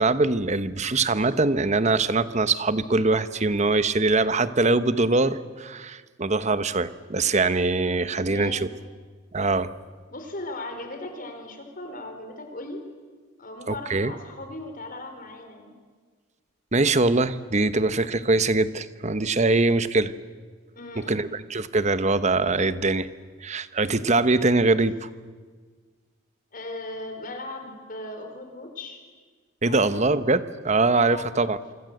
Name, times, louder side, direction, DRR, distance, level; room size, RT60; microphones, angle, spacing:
voice 1, 0.0-8.7 9.3-9.7 13.7-14.1 16.7-20.1 21.0-23.1 23.4-25.1 29.6-31.6, right 3 dB, 35° right, 13 dB, 1.0 m, -23 dB
voice 2, 8.2-8.7 10.1-12.8 13.4-15.8 20.8-21.3 24.7-24.8 26.5-29.0 29.6-30.0 31.1-31.4, left 2 dB, 45° left, 6 dB, 4.1 m, -38 dB
26.5 x 25.5 x 7.9 m, 1.5 s
head